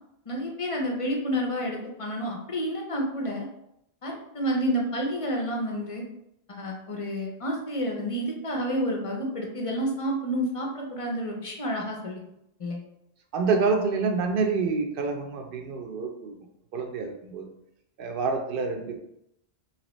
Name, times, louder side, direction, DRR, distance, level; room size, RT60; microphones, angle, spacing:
voice 1, 0.3-3.5 4.0-6.0 6.5-12.2 12.6-12.8, equal, 40° left, 0 dB, 0.5 m, -29 dB
voice 2, 13.3-16.3 16.7-17.5 18.0-19.0, right 4 dB, 65° right, 4 dB, 0.7 m, -27 dB
2.9 x 2.8 x 3.0 m, 0.79 s
omnidirectional pair, 1.1 m